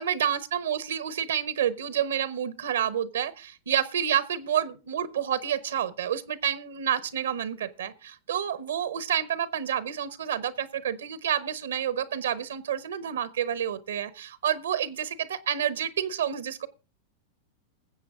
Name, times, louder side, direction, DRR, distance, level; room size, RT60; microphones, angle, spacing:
voice 1, 0.0-16.7, right 9 dB, 80° right, 0.9 m, -29 dB
21.0 x 7.7 x 3.7 m
hypercardioid pair, 105°, 0 cm